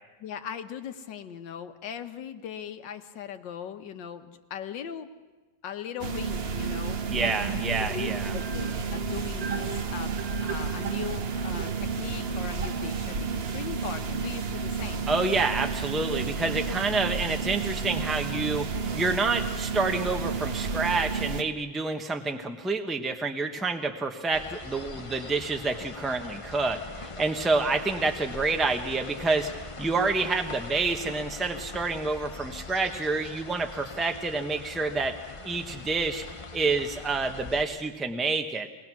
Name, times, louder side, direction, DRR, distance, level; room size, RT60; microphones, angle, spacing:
voice 1, 0.2-5.1 5.6-7.0 7.9-15.1, left 8 dB, 75° left, 8 dB, 1.7 m, -39 dB
sound 1, 6.0-21.4, right 5 dB, 45° right, 0.8 m, -31 dB
voice 2, 7.1-8.4 15.1-35.2 35.4-36.2 36.5-38.7, right 3 dB, ahead, 4 dB, 0.8 m, -28 dB
sound 2, 7.2-13.4, right 6 dB, 75° right, 1.8 m, -39 dB
sound 3, 24.3-37.6, left 3 dB, 50° left, 0.4 m, -42 dB
23.0 x 20.0 x 6.1 m, 1.2 s
omnidirectional pair, 2.0 m